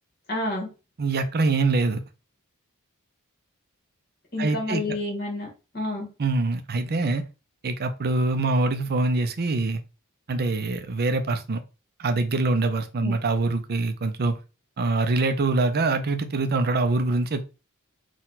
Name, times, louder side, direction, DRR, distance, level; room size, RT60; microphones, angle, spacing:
voice 1, 0.3-0.7 4.3-5.5 5.7-6.1 13.0-13.1, left 2 dB, 45° left, 0 dB, 1.7 m, -29 dB
voice 2, 1.0-2.0 4.4-4.8 6.2-7.2 7.6-9.8 10.3-11.6 12.0-14.4 14.8-17.4, right 3 dB, 45° right, 8 dB, 0.6 m, -24 dB
4.4 x 2.4 x 3.9 m, 0.31 s
head